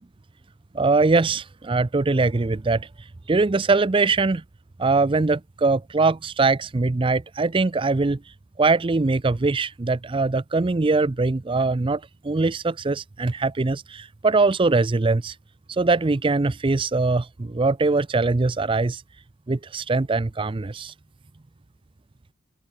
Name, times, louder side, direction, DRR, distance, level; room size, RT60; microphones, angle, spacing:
voice 1, 0.7-2.9 3.3-4.4 4.8-8.2 8.6-15.3 15.7-19.0 19.5-20.9, right 3 dB, 25° right, 0.4 m, -22 dB
open air
head